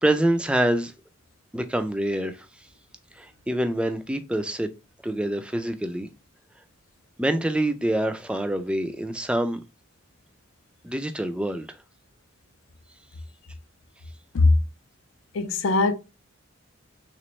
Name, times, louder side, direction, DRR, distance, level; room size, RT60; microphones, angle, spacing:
voice 1, 0.0-0.9 1.5-2.5 3.2-4.7 5.0-6.1 7.2-9.6 10.8-11.7, right 1 dB, 5° right, 0.3 m, -26 dB
voice 2, 15.3-15.9, left 3 dB, 75° left, 0.5 m, -20 dB
3.4 x 3.0 x 3.1 m
head